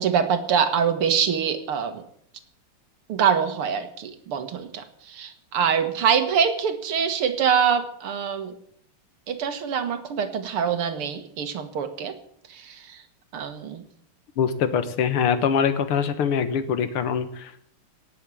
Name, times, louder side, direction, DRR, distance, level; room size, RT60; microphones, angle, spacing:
voice 1, 0.0-2.0 3.1-8.5 9.3-12.1 12.5-13.0 13.3-13.8, right 7 dB, 85° right, 9 dB, 2.4 m, -24 dB
voice 2, 14.4-17.7, left 7 dB, 85° left, 11 dB, 2.2 m, -24 dB
18.5 x 7.7 x 8.5 m, 0.64 s
omnidirectional pair, 2.4 m